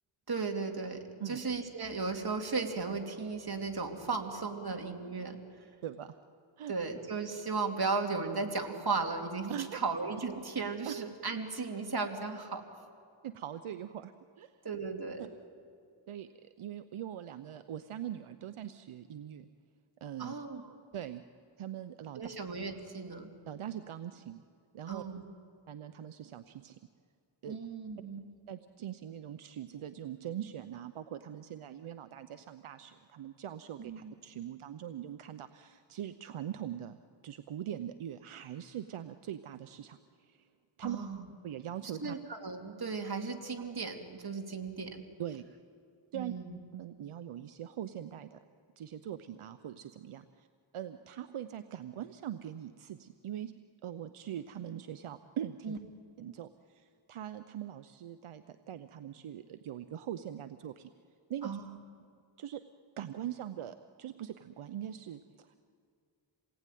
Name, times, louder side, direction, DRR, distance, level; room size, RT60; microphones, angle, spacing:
voice 1, 0.3-5.4 6.7-12.6 14.6-15.3 20.2-20.6 22.1-23.3 24.9-25.2 27.5-28.3 33.8-34.1 40.8-41.3 42.0-45.0 46.1-46.5 55.6-55.8 61.4-61.7, right 4 dB, 50° right, 3 dB, 3.0 m, -36 dB
voice 2, 5.8-6.2 6.6-6.7 9.5-9.8 10.9-11.0 13.2-14.5 15.2-15.3 16.1-19.5 20.0-20.3 20.9-21.2 21.6-22.2 23.4-24.4 24.7-25.0 25.7-26.8 27.4-27.6 28.5-37.0 37.2-40.5 40.8-41.0 41.4-42.2 45.2-45.4 46.1-46.3 46.7-48.4 48.8-50.5 50.7-53.5 53.8-55.8 56.2-60.9 61.3-61.6 62.4-62.6 63.0-65.6, right 10 dB, 80° right, 10 dB, 0.8 m, -42 dB
28.0 x 19.0 x 9.3 m, 2.3 s
cardioid pair, 55°, 49 cm